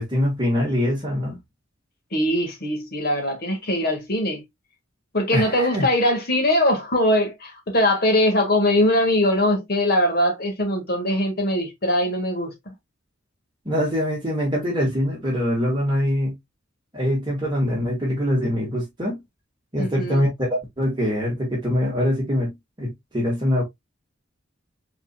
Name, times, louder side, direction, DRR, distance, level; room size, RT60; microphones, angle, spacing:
voice 1, 0.0-1.4 5.3-5.9 13.7-16.4 16.9-19.2 19.7-23.6, equal, 25° right, 1.9 m, -23 dB
voice 2, 2.1-4.4 5.1-12.7 19.8-20.2, left 1 dB, 50° left, 1.6 m, -21 dB
4.9 x 4.2 x 2.2 m
head